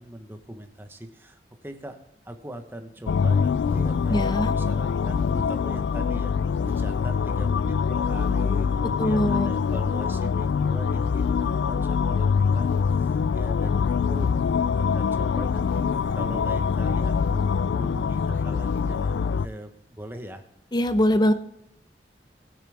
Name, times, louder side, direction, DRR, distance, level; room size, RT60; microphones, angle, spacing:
voice 1, 0.0-2.0 2.2-6.3 6.6-14.3 14.7-20.4, right 1 dB, 10° right, 5 dB, 1.1 m, -40 dB
sound 1, 3.1-19.5, left 6 dB, 75° left, 0.3 m, -24 dB
voice 2, 4.1-4.5 9.0-9.5 20.7-21.3, equal, 25° left, 10 dB, 0.7 m, -22 dB
16.0 x 10.0 x 3.5 m, 0.74 s
head